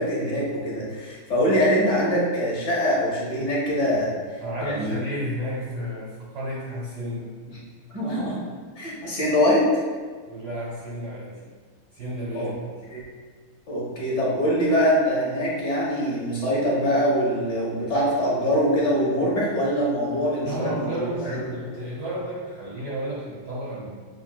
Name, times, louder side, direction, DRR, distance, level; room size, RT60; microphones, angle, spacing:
voice 1, 0.0-4.1 4.6-5.0 7.9-8.4 8.8-9.6 12.3-12.5 12.9-13.0 13.7-21.3, equal, 45° left, -7 dB, 1.1 m, -23 dB
voice 2, 4.4-7.7 10.3-11.4 11.9-12.8 20.4-24.0, right 1 dB, 70° right, -5 dB, 1.0 m, -32 dB
6.5 x 2.5 x 2.2 m, 1.5 s
omnidirectional pair, 2.4 m